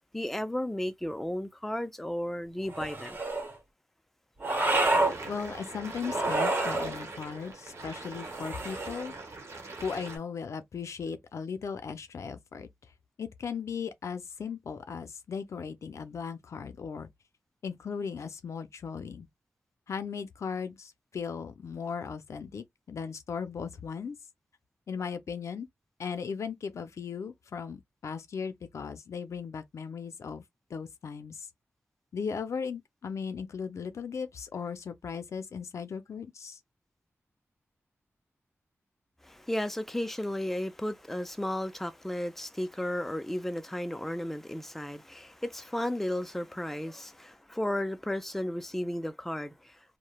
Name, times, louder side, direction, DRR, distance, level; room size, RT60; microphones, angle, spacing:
voice 1, 0.1-3.2 39.2-50.0, left 1 dB, 5° left, 0.4 m, -34 dB
sound 1, 2.7-3.5 4.4-5.2 6.0-6.9 8.2-9.1, right 2 dB, 40° right, 1.0 m, -28 dB
sound 2, 4.6-10.2, right 3 dB, 70° right, 0.9 m, -42 dB
voice 2, 5.2-9.1 9.8-12.7 13.2-17.1 17.6-19.3 19.9-24.2 24.9-25.7 26.0-30.4 30.7-31.5 32.1-36.6, left 6 dB, 80° left, 0.4 m, -37 dB
3.1 x 2.1 x 2.2 m
wide cardioid pair, 75°, 5 cm